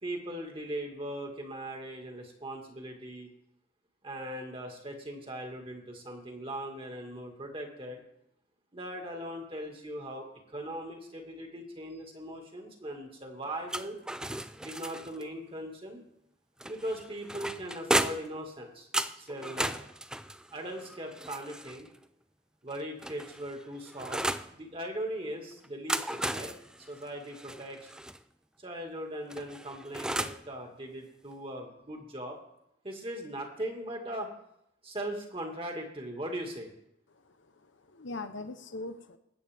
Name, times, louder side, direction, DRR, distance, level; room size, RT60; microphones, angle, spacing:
voice 1, 0.0-3.3 4.0-8.0 8.7-14.0 14.6-16.0 16.6-18.9 19.2-19.7 20.5-21.9 22.6-24.2 24.6-26.5 26.9-27.9 28.6-32.4 32.8-34.3 34.8-36.7, right 1 dB, 30° right, 2 dB, 2.1 m, -39 dB
sound 1, 13.7-15.3 16.6-18.4 18.9-21.9 22.7-24.5 25.6-28.2 29.3-30.5, right 1 dB, 5° right, 0.4 m, -35 dB
voice 2, 37.1-39.2, left 2 dB, 80° left, 9 dB, 1.0 m, -42 dB
21.0 x 8.7 x 3.6 m, 0.79 s
head